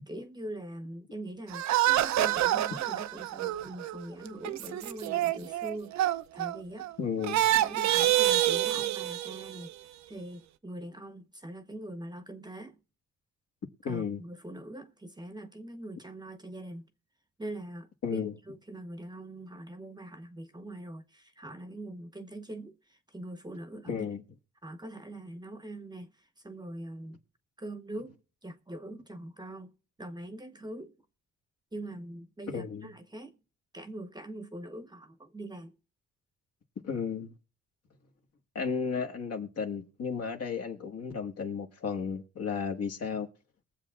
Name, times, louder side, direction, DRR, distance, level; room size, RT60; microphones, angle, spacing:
voice 1, 0.1-6.9 7.5-9.7 10.1-12.8 13.8-16.9 17.4-22.8 23.1-24.1 24.6-26.1 26.4-27.2 27.6-29.7 30.0-30.9 31.7-33.4 33.7-35.7, right 1 dB, 15° right, 0.9 m, -43 dB
sound 1, 1.5-6.9 7.2-9.7, right 13 dB, 65° right, 0.5 m, -27 dB
voice 2, 7.0-7.4 13.8-14.2 18.0-18.3 23.8-24.2 32.5-32.9 36.8-37.3 38.5-43.3, left 6 dB, 55° left, 1.5 m, -33 dB
21.5 x 7.4 x 2.4 m
cardioid pair, 90°, 30 cm